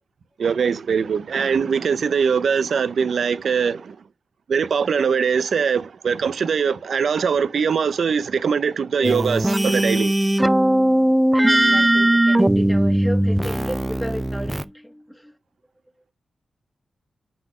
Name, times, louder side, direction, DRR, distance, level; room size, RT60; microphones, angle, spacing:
voice 1, 0.4-4.0 4.5-10.1, right 6 dB, 75° right, 0.6 m, -22 dB
sound 1, 9.0-14.6, right 1 dB, 15° right, 0.4 m, -19 dB
voice 2, 11.3-15.3, equal, ahead, 1.4 m, -32 dB
5.8 x 3.9 x 4.9 m
cardioid pair, 55°, 0 cm